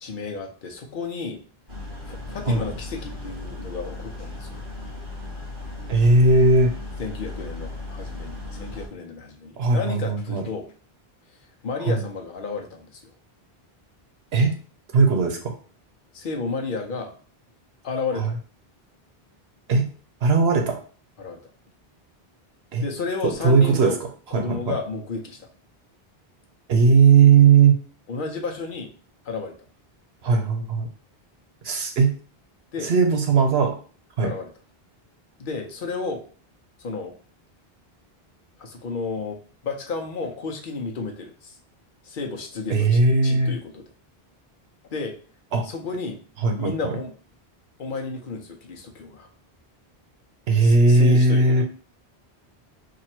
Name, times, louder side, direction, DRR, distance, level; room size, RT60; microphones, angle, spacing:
voice 1, 0.0-1.4 2.1-4.6 7.0-10.7 11.6-13.1 16.1-17.1 17.8-18.4 21.2-21.4 22.8-24.0 24.3-25.5 28.1-28.9 29.2-29.6 32.7-32.9 34.2-34.5 35.4-36.2 36.8-37.1 38.6-41.6 42.0-43.8 44.9-45.2 45.6-46.2 46.6-47.1 47.8-49.3 50.6-51.6, left 4 dB, 60° left, 3 dB, 0.8 m, -32 dB
sound 1, 1.7-8.9, left 2 dB, 55° right, 1.4 m, -36 dB
voice 2, 5.9-6.7 9.6-10.4 11.8-12.0 14.3-14.6 14.9-15.4 18.2-18.3 19.7-19.9 20.2-20.8 22.7-22.8 23.2-23.9 24.3-24.7 26.7-27.8 30.2-30.9 31.6-32.2 32.8-33.7 34.2-34.3 42.7-43.6 45.5-45.6 46.4-46.9 50.5-51.6, right 4 dB, 80° right, 4 dB, 1.1 m, -18 dB
3.0 x 2.6 x 4.3 m, 0.41 s
omnidirectional pair, 1.0 m